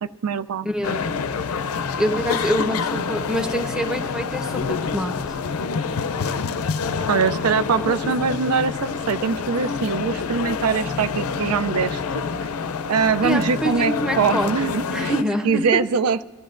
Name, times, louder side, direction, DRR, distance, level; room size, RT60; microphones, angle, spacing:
voice 1, 0.0-0.7 7.1-12.0 12.9-15.1 15.4-16.2, right 5 dB, 85° right, 12 dB, 0.4 m, -22 dB
voice 2, 0.6-1.0 2.0-5.2 13.2-14.5 14.9-15.6, equal, 5° right, 4 dB, 1.0 m, -25 dB
sound 1, 0.8-15.2, left 5 dB, 75° left, 0.5 m, -27 dB
24.0 x 14.0 x 2.5 m, 1.1 s
head